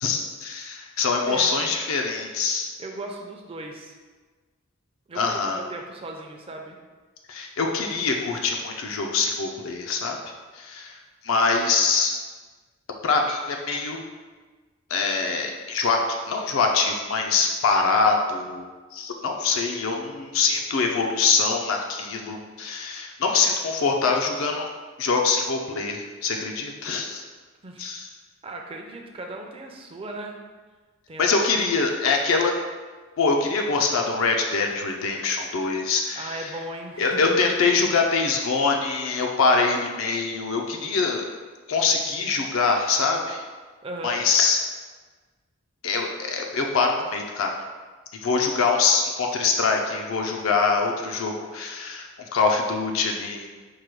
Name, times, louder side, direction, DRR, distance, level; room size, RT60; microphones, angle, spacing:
voice 1, 0.0-2.7 5.2-5.6 7.3-10.2 10.5-11.0 11.2-12.1 13.0-14.0 14.9-16.0 16.3-18.6 18.9-24.7 25.0-27.2 27.8-28.1 31.2-32.5 33.2-36.5 37.0-41.2 41.7-43.4 44.0-44.6 45.8-47.5 48.2-53.5, left 4 dB, 70° left, 2 dB, 0.4 m, -24 dB
voice 2, 2.8-4.0 5.1-6.8 27.6-27.9 28.4-30.4 31.1-31.3 36.2-37.4 43.8-44.2, right 2 dB, 25° right, 2 dB, 0.4 m, -37 dB
4.7 x 2.2 x 4.5 m, 1.4 s
head